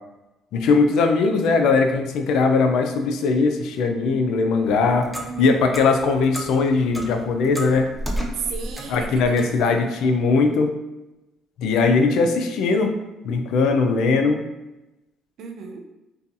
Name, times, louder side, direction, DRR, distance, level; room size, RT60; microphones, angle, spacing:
voice 1, 0.5-5.1 5.4-8.0 8.9-10.8 11.6-12.9 13.2-14.4, left 4 dB, 75° left, 5 dB, 0.3 m, -20 dB
Clock, 4.6-9.6, right 1 dB, ahead, 0.4 m, -33 dB
voice 2, 5.2-5.6 8.3-9.8 15.4-15.8, right 5 dB, 70° right, 3 dB, 0.4 m, -34 dB
2.6 x 2.3 x 2.5 m, 0.99 s
cardioid pair, 100°, 0 cm